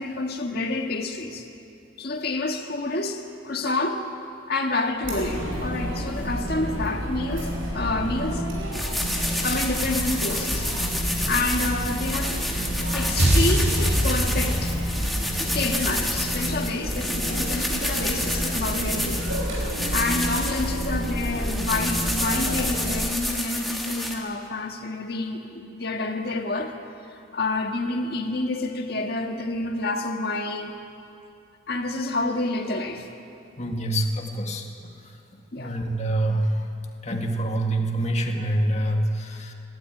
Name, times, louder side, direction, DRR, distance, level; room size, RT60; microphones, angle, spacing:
voice 1, 0.0-1.5 2.0-4.1 4.5-8.4 9.4-10.7 11.2-12.5 12.9-14.8 15.5-19.3 19.6-26.8 27.1-30.7 31.7-33.1 35.5-35.8 36.3-36.6 38.8-38.9, left 2 dB, 50° left, 3 dB, 1.8 m, -28 dB
Chatter, 5.0-22.9, equal, 85° right, 5.5 m, -29 dB
sound 1, 8.7-24.1, left 1 dB, ahead, 1.9 m, -30 dB
sound 2, 13.2-17.5, equal, 55° right, 2.8 m, -25 dB
voice 2, 33.6-34.6 35.6-36.5 37.0-39.5, right 1 dB, 35° left, 2 dB, 1.9 m, -26 dB
25.0 x 12.5 x 9.1 m, 2.6 s
head